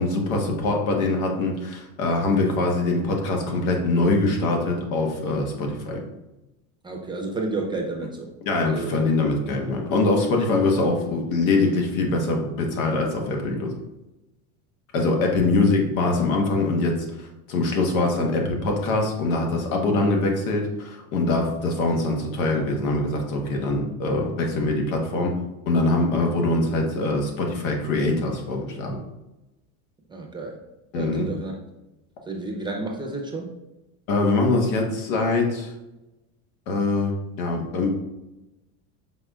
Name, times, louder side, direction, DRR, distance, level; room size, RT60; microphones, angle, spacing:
voice 1, 0.0-6.0 8.5-13.7 14.9-25.3 25.7-29.0 30.9-31.3 34.1-35.7 36.7-38.0, left 2 dB, 85° left, 1 dB, 1.3 m, -23 dB
voice 2, 6.8-8.3 8.6-9.0 30.1-30.6 30.9-31.5 32.3-33.5, right 2 dB, 10° right, 0 dB, 0.6 m, -31 dB
5.8 x 3.9 x 2.3 m, 0.97 s
supercardioid pair, 135°, 40 cm